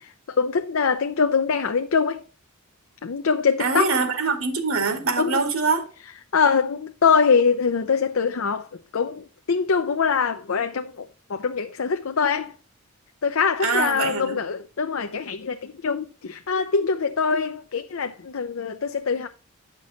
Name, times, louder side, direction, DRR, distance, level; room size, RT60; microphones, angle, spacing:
voice 1, 0.3-2.2 3.0-3.9 5.2-5.4 6.3-8.7 8.9-12.5 13.2-19.3, left 5 dB, 70° left, 0.6 m, -23 dB
voice 2, 3.6-5.9 13.6-14.4, right 4 dB, 75° right, 2.1 m, -24 dB
9.7 x 6.0 x 4.1 m
head